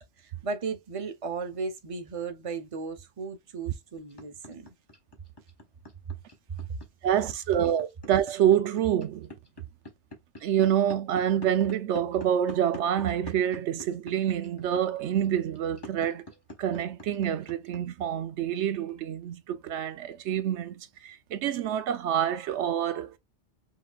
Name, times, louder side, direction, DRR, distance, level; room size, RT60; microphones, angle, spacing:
voice 1, 0.0-4.7 6.5-6.6, right 4 dB, 35° right, 0.8 m, -36 dB
sound 1, 4.0-17.8, left 1 dB, 20° left, 1.2 m, -44 dB
voice 2, 7.0-9.3 10.4-16.2 16.6-23.2, right 10 dB, 80° right, 0.9 m, -27 dB
5.6 x 3.0 x 2.3 m
omnidirectional pair, 1.1 m